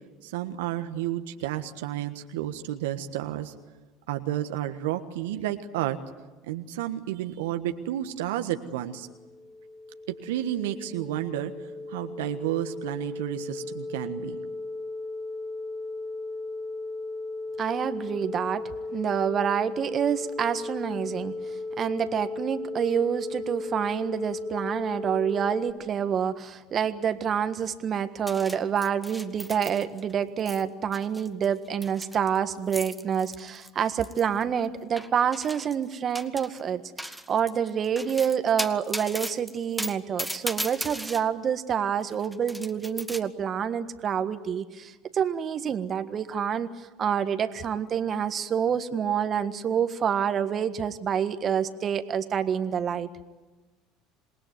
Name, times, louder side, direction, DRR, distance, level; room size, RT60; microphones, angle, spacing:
voice 1, 0.2-3.5 4.1-6.0 6.4-9.1 10.1-11.5 11.9-14.4, right 12 dB, 75° right, 7 dB, 1.4 m, -31 dB
sound 1, 8.8-25.7, left 2 dB, 40° left, 7.0 m, -36 dB
voice 2, 17.6-53.1, right 8 dB, 40° right, 10 dB, 1.6 m, -27 dB
sound 2, 28.3-30.1 30.4-30.6 30.9-34.4 35.0-35.8 36.1-36.6 37.0-41.2 42.0-43.2, equal, ahead, 1.6 m, -36 dB
27.5 x 20.5 x 9.5 m, 1.2 s
hypercardioid pair, 75°, 0 cm